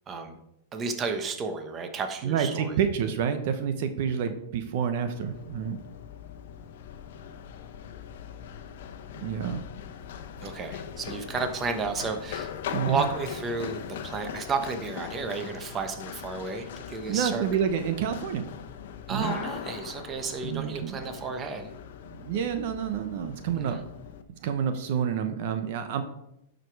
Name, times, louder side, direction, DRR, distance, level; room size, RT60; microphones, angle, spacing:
voice 1, 0.1-0.4 0.7-2.8 10.4-12.5 12.9-17.4 19.1-21.7 23.5-23.8, right 4 dB, 20° right, 6 dB, 1.1 m, -32 dB
voice 2, 2.2-5.8 9.2-9.6 10.4-10.5 12.7-13.0 17.1-18.5 19.1-19.3 20.4-21.0 22.1-23.8 24.3-26.0, right 8 dB, 55° right, 8 dB, 0.8 m, -28 dB
Run, 5.1-24.2, left 8 dB, 65° left, 0.9 m, -40 dB
11.0 x 5.1 x 4.7 m, 0.82 s
supercardioid pair, 150°, 0 cm